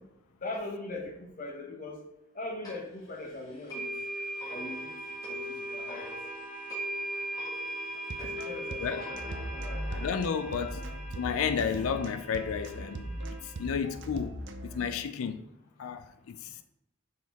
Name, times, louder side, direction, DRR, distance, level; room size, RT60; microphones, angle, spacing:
voice 1, 0.4-2.0 2.3-3.8 4.5-4.9 5.3-6.1 8.2-9.2 9.5-9.8 10.5-10.7, left 2 dB, 40° left, 1.2 m, -40 dB
sound 1, 2.6-2.7 3.7-13.8, right 1 dB, 20° left, 2.0 m, -39 dB
sound 2, 8.0-14.7, right 3 dB, 55° right, 0.5 m, -43 dB
sound 3, 9.1-12.2 12.5-15.0, equal, ahead, 1.0 m, -40 dB
voice 2, 9.9-10.8 11.2-15.4 15.8-16.6, left 6 dB, 85° left, 0.4 m, -32 dB
6.0 x 4.3 x 3.6 m
head